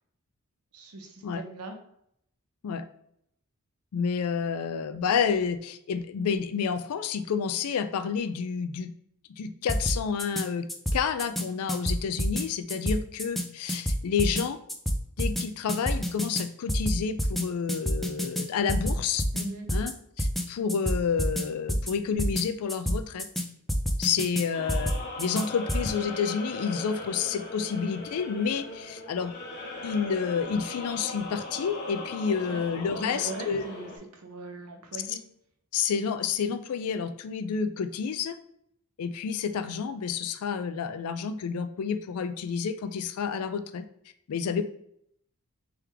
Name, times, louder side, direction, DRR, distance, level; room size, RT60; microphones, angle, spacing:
voice 1, 0.7-1.8 19.3-19.7 32.2-32.6 33.0-35.2, right 2 dB, 85° right, 4 dB, 0.8 m, -40 dB
voice 2, 3.9-8.9 9.4-10.7 10.9-14.6 15.2-19.2 19.7-19.9 20.2-23.3 24.0-29.3 29.8-33.6 35.1-35.2 35.7-38.4 39.0-43.9 44.3-44.6, left 6 dB, 80° left, 10 dB, 0.4 m, -29 dB
sound 1, 9.7-10.4 10.7-11.4 11.7-12.4 12.7-13.4 13.7-14.4 14.7-15.4 15.7-16.4 16.7-17.4 17.7-18.4 18.7-19.4 19.7-19.9 20.2-20.4 20.7-21.4 21.7-21.9 22.2-22.4 22.7-23.4 23.7-24.4 24.7-25.4 25.7-25.9, equal, ahead, 0.4 m, -27 dB
sound 2, 24.5-34.0, left 2 dB, 50° left, 1.1 m, -39 dB
3.4 x 3.3 x 3.4 m, 0.74 s
head